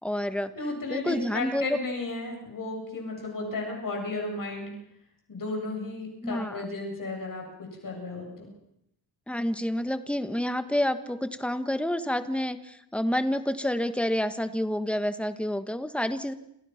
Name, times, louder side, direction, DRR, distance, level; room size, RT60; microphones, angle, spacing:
voice 1, 0.0-0.5 0.9-1.8 6.2-6.6 9.3-16.3, left 1 dB, 5° left, 10 dB, 1.5 m, -28 dB
voice 2, 0.5-4.7 5.3-8.5, left 2 dB, 55° left, 1 dB, 7.5 m, -34 dB
29.5 x 27.5 x 5.9 m, 0.79 s
wide cardioid pair, 165°, 39 cm